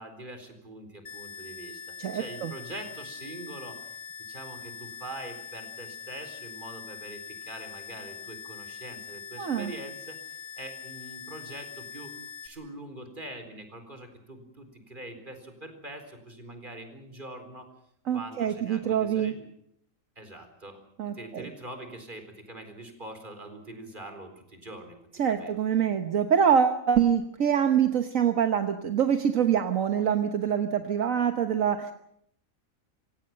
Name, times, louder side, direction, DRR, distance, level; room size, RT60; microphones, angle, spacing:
voice 1, 0.0-12.1 12.4-17.7 18.1-19.5 20.2-20.8 21.1-25.0 25.3-25.5, right 1 dB, 35° right, 7 dB, 4.4 m, -43 dB
sound 1, 1.1-12.5, left 7 dB, 90° left, 3.4 m, -43 dB
voice 2, 2.0-2.5 9.4-9.7 18.1-19.3 21.0-21.5 25.2-31.9, right 8 dB, 70° right, 8 dB, 1.5 m, -25 dB
27.0 x 17.5 x 7.7 m, 0.74 s
omnidirectional pair, 1.4 m